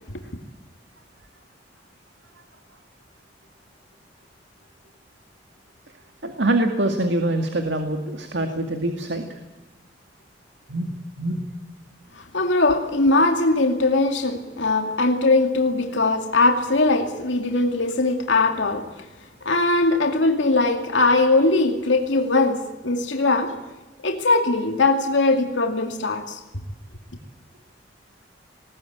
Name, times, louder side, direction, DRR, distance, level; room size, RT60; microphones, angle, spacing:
voice 1, 6.2-9.3 10.7-11.5, right 1 dB, 70° right, 2.2 m, -24 dB
voice 2, 12.2-18.9 19.4-23.5 24.0-26.4, left 2 dB, 80° left, 2.4 m, -20 dB
20.5 x 19.0 x 8.9 m
head